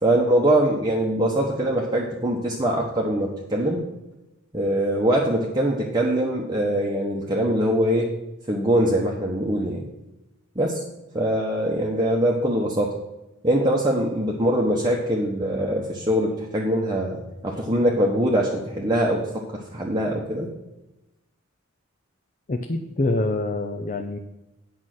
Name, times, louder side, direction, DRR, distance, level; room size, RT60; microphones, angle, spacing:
voice 1, 0.0-3.8 4.5-8.1 8.5-9.9 10.5-10.8 11.1-13.0 13.4-20.5, right 1 dB, 20° right, -2 dB, 1.1 m, -23 dB
voice 2, 22.5-24.2, left 2 dB, 40° left, 6 dB, 0.6 m, -25 dB
8.8 x 5.6 x 7.7 m, 0.98 s
head